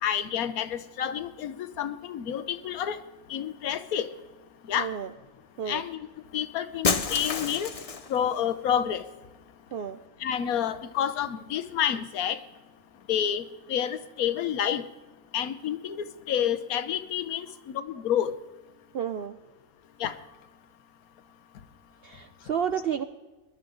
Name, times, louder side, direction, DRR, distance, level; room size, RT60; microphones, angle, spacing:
voice 1, 0.0-3.0 3.3-4.1 4.7-4.9 5.7-6.0 6.3-7.7 8.1-9.1 10.2-12.4 13.1-14.8 15.3-18.3 20.0-20.1, left 9 dB, 80° left, 12 dB, 1.3 m, -29 dB
voice 2, 4.8-5.1 5.6-5.8 9.7-10.0 18.9-19.4 22.0-23.0, right 8 dB, 65° right, 10 dB, 0.6 m, -31 dB
Shatter, 6.8-8.2, left 5 dB, 40° left, 0.5 m, -28 dB
21.0 x 11.5 x 3.8 m, 1.2 s
omnidirectional pair, 1.5 m